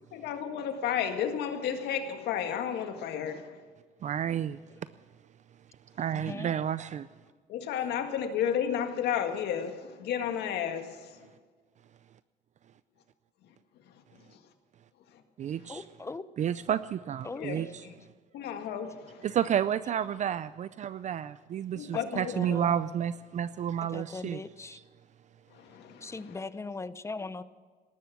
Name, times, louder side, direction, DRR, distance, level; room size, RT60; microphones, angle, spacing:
voice 1, 0.1-3.6 7.5-11.2 13.9-14.0 14.3-14.4 15.1-15.2 15.6-15.7 17.3-17.6 17.8-18.0 18.3-19.3 21.7-22.3 25.5-26.2, left 8 dB, 75° left, 6 dB, 1.9 m, -32 dB
voice 2, 4.0-4.6 6.0-7.1 15.4-15.8 16.4-17.7 19.2-24.4, right 9 dB, 45° right, 15 dB, 0.5 m, -31 dB
voice 3, 6.0-6.5 15.7-16.2 17.2-17.7 21.9-22.8 23.9-24.8 26.0-27.4, left 3 dB, 15° left, 14 dB, 0.8 m, -39 dB
18.5 x 13.5 x 6.0 m, 1.5 s
cardioid pair, 110°, 17 cm